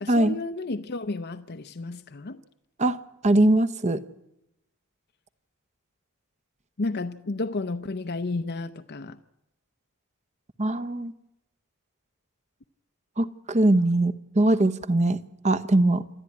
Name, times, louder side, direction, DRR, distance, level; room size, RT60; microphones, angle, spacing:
voice 1, 0.0-2.4 6.8-9.2, left 3 dB, 50° left, 0.7 m, -32 dB
voice 2, 3.2-4.0 10.6-11.1 13.2-15.2 15.4-16.0, right 1 dB, 30° right, 1.0 m, -21 dB
27.5 x 13.0 x 9.5 m
head